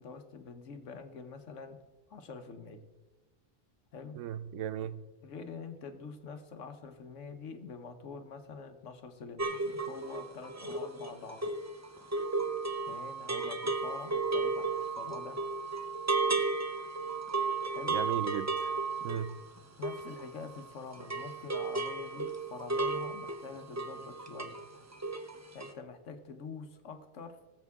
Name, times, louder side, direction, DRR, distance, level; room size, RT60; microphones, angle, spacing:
voice 1, 0.0-1.8 2.1-2.8 3.9-4.2 5.2-11.5 12.9-15.4 17.7-17.9 19.8-24.6 25.5-27.4, left 5 dB, 90° left, 8 dB, 1.3 m, -46 dB
voice 2, 4.2-5.0 17.9-18.7 19.0-19.4, right 9 dB, 85° right, 14 dB, 0.9 m, -36 dB
sound 1, 9.4-20.7 20.9-24.7 24.9-25.3 25.6-25.7, right 3 dB, 20° right, 0.4 m, -34 dB
18.0 x 7.4 x 3.6 m, 1.2 s
omnidirectional pair, 1.2 m